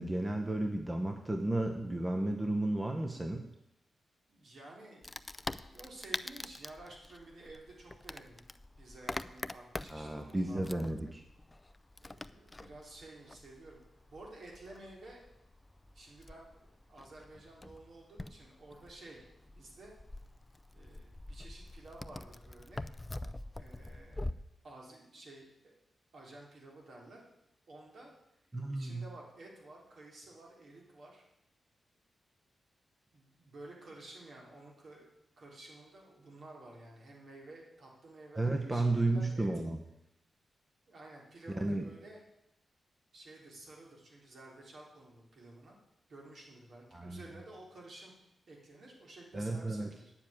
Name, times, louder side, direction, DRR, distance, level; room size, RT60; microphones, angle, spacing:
voice 1, 0.0-3.4 9.9-11.2 28.5-29.0 38.4-39.8 41.6-41.8 46.9-47.2 49.3-49.9, right 2 dB, 20° right, 3 dB, 0.9 m, -33 dB
voice 2, 4.3-8.5 8.8-10.9 12.0-13.8 14.1-15.3 15.9-19.9 20.7-22.8 23.6-24.3 24.6-25.7 26.1-27.2 27.7-28.1 28.7-31.2 33.1-35.1 35.4-39.6 40.9-42.2 43.1-45.8 46.1-48.1 48.5-50.1, right 2 dB, 65° right, -1 dB, 3.6 m, -52 dB
Wood, 5.0-24.3, left 2 dB, 15° left, 0.4 m, -45 dB
9.3 x 7.3 x 8.8 m, 0.84 s
wide cardioid pair, 120°, 0 cm